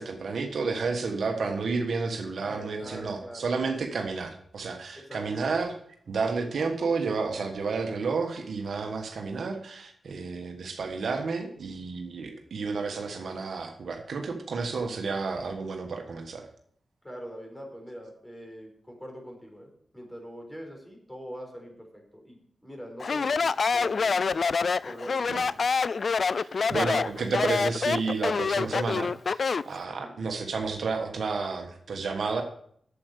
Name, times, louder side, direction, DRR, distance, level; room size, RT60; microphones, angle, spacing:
voice 1, 0.0-5.8 6.1-16.5 25.3-25.4 26.3-32.4, right 4 dB, 75° right, 4 dB, 1.4 m, -31 dB
voice 2, 2.4-3.5 5.0-5.5 17.0-22.4 22.6-24.3 24.8-25.7 30.0-30.2, equal, 10° left, 1 dB, 4.2 m, -43 dB
Speech, 23.0-29.7, left 5 dB, 60° left, 0.3 m, -26 dB
8.5 x 7.9 x 6.7 m, 0.65 s
cardioid pair, 60°, 0 cm